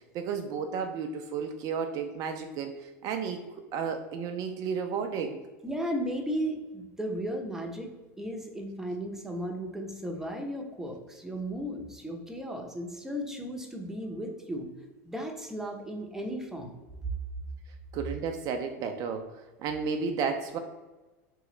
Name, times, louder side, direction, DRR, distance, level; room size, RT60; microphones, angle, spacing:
voice 1, 0.1-3.4 3.7-5.4 17.9-19.3 19.6-20.6, right 6 dB, 50° right, 6 dB, 0.4 m, -32 dB
voice 2, 5.6-7.9 8.2-14.7 15.0-16.8, equal, 5° right, 2 dB, 0.7 m, -35 dB
3.1 x 2.7 x 3.8 m, 1.2 s
hypercardioid pair, 95°, 8 cm